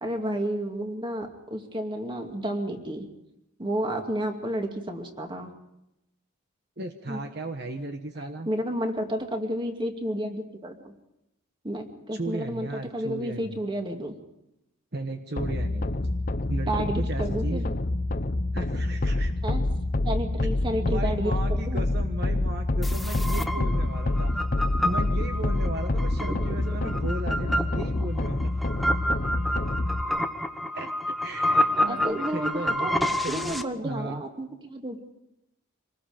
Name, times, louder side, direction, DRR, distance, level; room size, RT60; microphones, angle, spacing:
voice 1, 0.0-3.1 3.6-5.5 7.1-7.2 8.5-10.9 11.6-14.1 16.7-17.7 19.4-19.7 20.0-21.8 23.6-23.7 31.8-33.0 33.3-35.0, right 1 dB, 25° right, 4 dB, 2.3 m, -31 dB
voice 2, 6.8-8.5 12.1-13.6 14.9-16.0 16.5-17.6 18.5-19.3 20.8-24.3 24.8-28.5 30.7-33.6 33.8-34.2, right 2 dB, 55° right, 5 dB, 1.3 m, -35 dB
sound 1, 15.4-30.0, left 2 dB, 40° left, 0.8 m, -27 dB
sound 2, 22.8-33.6, equal, ahead, 0.9 m, -29 dB
26.0 x 20.0 x 5.1 m, 0.85 s
head